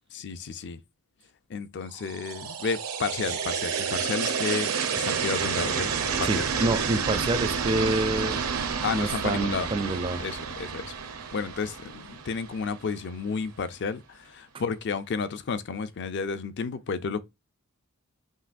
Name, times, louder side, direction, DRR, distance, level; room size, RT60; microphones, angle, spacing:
voice 1, 0.1-0.8 1.5-6.5 8.8-9.7 10.2-11.0 11.3-17.2, left 5 dB, 55° left, 0.4 m, -32 dB
sound 1, 2.0-13.0, right 6 dB, 85° right, 0.9 m, -30 dB
voice 2, 6.2-8.4 8.9-10.2, right 2 dB, 25° right, 0.4 m, -27 dB
5.5 x 2.9 x 2.5 m
head